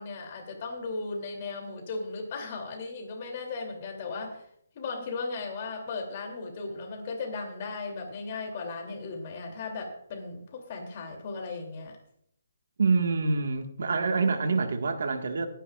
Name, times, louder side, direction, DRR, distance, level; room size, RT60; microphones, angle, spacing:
voice 1, 0.0-4.5 4.7-12.0, left 3 dB, 35° left, 3 dB, 2.9 m, -36 dB
voice 2, 12.8-15.5, right 4 dB, 70° right, 5 dB, 1.6 m, -26 dB
20.5 x 10.0 x 2.4 m, 0.68 s
hypercardioid pair, 160°, 0 cm